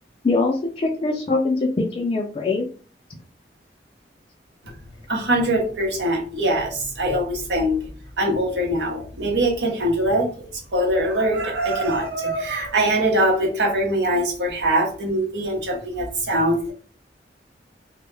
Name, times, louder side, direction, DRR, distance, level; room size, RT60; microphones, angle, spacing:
voice 1, 0.2-2.7, left 3 dB, 35° left, 0 dB, 0.3 m, -22 dB
voice 2, 5.1-7.8 8.2-10.5 10.7-16.7, right 1 dB, 80° right, -1 dB, 0.8 m, -22 dB
2.1 x 2.0 x 3.1 m, 0.40 s
head